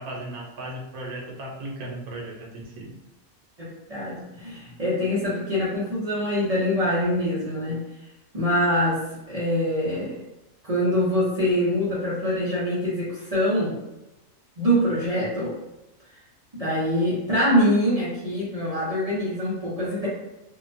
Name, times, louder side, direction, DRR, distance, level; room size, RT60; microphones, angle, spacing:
voice 1, 0.0-3.0 7.5-7.7, right 1 dB, 85° right, -1 dB, 1.1 m, -36 dB
voice 2, 3.6-7.8 8.3-10.2 10.6-13.8 14.6-15.6 16.5-20.1, equal, 35° right, -9 dB, 0.6 m, -24 dB
2.7 x 2.1 x 2.5 m, 0.95 s
omnidirectional pair, 1.5 m